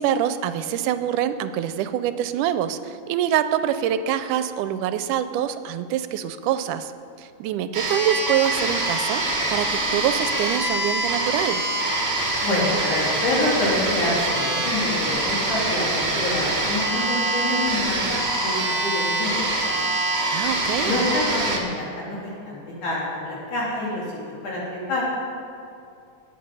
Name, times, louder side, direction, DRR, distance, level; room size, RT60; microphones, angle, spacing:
voice 1, 0.0-6.9 7.2-11.6 20.3-21.0, right 10 dB, 85° right, 11 dB, 2.1 m, -25 dB
sound 1, 7.7-21.6, right 2 dB, 25° right, 1.5 m, -24 dB
voice 2, 12.4-19.8 20.8-25.0, left 1 dB, 70° left, -6 dB, 5.1 m, -27 dB
19.0 x 8.8 x 5.5 m, 2.6 s
omnidirectional pair, 3.6 m